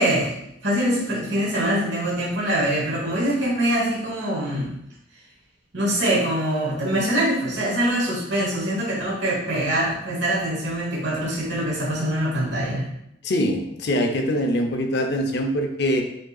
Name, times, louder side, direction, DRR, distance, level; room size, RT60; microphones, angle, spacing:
voice 1, 0.0-4.7 5.7-12.9, right 1 dB, 65° right, -5 dB, 1.2 m, -24 dB
voice 2, 13.2-16.0, equal, 60° left, 4 dB, 0.6 m, -23 dB
5.1 x 4.0 x 2.3 m, 0.79 s
head